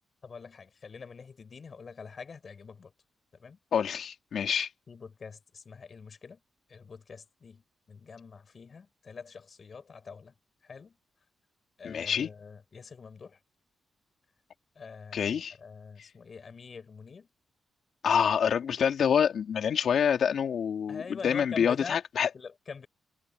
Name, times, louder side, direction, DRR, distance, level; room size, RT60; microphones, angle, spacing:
voice 1, 0.2-2.9 3.3-3.6 4.9-6.4 6.7-10.3 10.6-11.0 11.8-13.4 14.7-17.3 20.9-22.0 22.3-22.9, left 5 dB, 50° left, 6.6 m, -45 dB
voice 2, 3.7-4.7 11.8-12.3 15.1-15.5 18.0-22.3, left 7 dB, 70° left, 3.8 m, -27 dB
cardioid pair, 60°, 0 cm